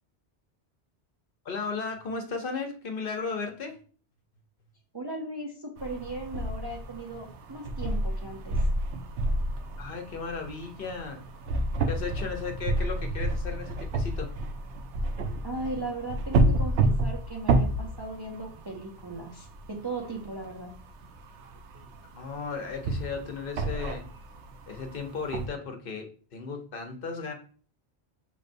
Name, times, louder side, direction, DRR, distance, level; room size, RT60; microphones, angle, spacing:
voice 1, 1.4-3.8 9.8-11.2 11.9-14.3 22.1-24.1 24.7-27.3, left 4 dB, 55° left, 4 dB, 0.9 m, -35 dB
voice 2, 4.9-8.6 15.4-20.7, right 2 dB, 30° right, 0 dB, 0.5 m, -37 dB
sound 1, 5.8-25.5, right 2 dB, 85° right, 0.9 m, -30 dB
6.3 x 3.3 x 2.6 m, 0.41 s
omnidirectional pair, 1.1 m